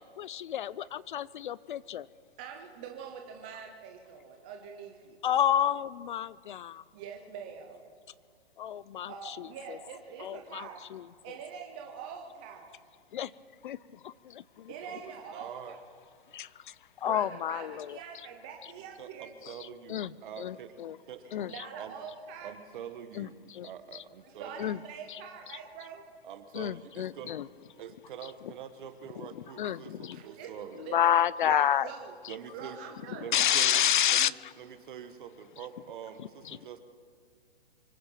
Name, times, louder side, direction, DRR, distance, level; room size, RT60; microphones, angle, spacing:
voice 1, 0.0-2.1 5.2-6.8 8.6-9.1 10.2-10.6 10.9-11.0 13.1-13.3 13.6-13.8 16.3-16.5 17.0-17.7 19.9-20.1 20.4-20.5 20.8-20.9 21.3-21.5 23.2-23.3 23.6-23.7 24.6-24.8 26.6-27.4 29.6-30.2 30.9-31.9 33.3-34.3, left 10 dB, 55° left, 21 dB, 0.5 m, -28 dB
voice 2, 2.4-5.3 6.9-7.8 9.1-10.8 11.2-12.7 14.7-15.8 17.0-19.3 21.2-22.5 24.3-26.0 30.1-30.5 30.8-31.0 31.5-32.2 32.5-33.3, right 7 dB, 10° right, 2 dB, 0.3 m, -44 dB
voice 3, 14.8-15.8 19.0-20.8 21.0-21.3 21.8-21.9 22.4-24.8 26.2-27.4 27.8-30.8 31.4-31.6 32.3-32.8 33.2-33.8 34.1-36.8, right 8 dB, 55° right, 10 dB, 1.5 m, -45 dB
25.0 x 9.6 x 5.9 m, 2.1 s
hypercardioid pair, 150°, 31 cm